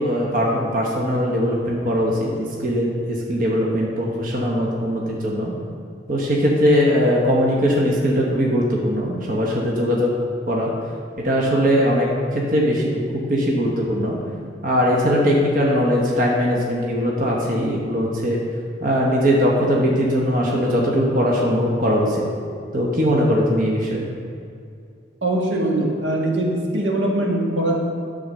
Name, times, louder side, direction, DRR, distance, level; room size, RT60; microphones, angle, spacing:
voice 1, 0.0-5.5 6.1-10.1 10.5-10.7 11.2-14.1 14.6-18.4 18.8-22.2 22.7-24.0, equal, 50° right, -3 dB, 1.1 m, -20 dB
voice 2, 25.2-27.8, right 1 dB, 85° right, -1 dB, 1.4 m, -22 dB
9.5 x 4.0 x 6.2 m, 2.3 s
head